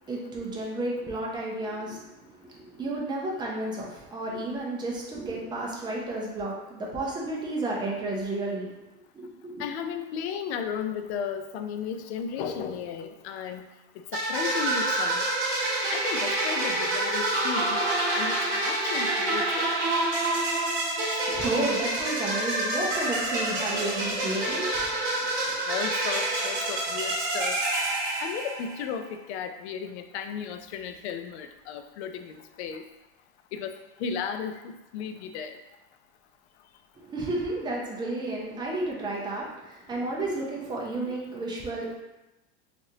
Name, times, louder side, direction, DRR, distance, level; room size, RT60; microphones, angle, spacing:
voice 1, 0.1-2.0 2.4-8.7 9.1-9.6 21.3-24.7 37.1-42.0, right 2 dB, 15° right, -3 dB, 0.6 m, -32 dB
voice 2, 9.6-13.6 14.1-15.2 15.9-17.8 18.1-19.7 25.7-27.6 28.2-32.8 33.5-35.6, left 7 dB, 70° left, 7 dB, 0.5 m, -34 dB
sound 1, 14.1-28.9, right 2 dB, 40° right, 1.4 m, -27 dB
3.2 x 2.5 x 2.7 m, 1.0 s
supercardioid pair, 130°, 34 cm